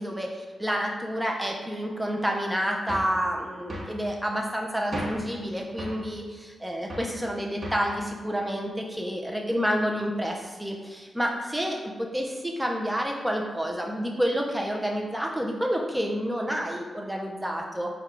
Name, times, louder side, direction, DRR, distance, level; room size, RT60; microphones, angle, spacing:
voice 1, 0.0-17.9, equal, 10° right, 0 dB, 0.6 m, -29 dB
sound 1, 2.9-3.2 3.7-4.0 4.9-5.3 5.8-6.1 6.9-7.2 7.6-7.9, equal, 50° right, 1.0 m, -35 dB
4.6 x 2.3 x 4.6 m, 1.5 s
cardioid pair, 55°, 0 cm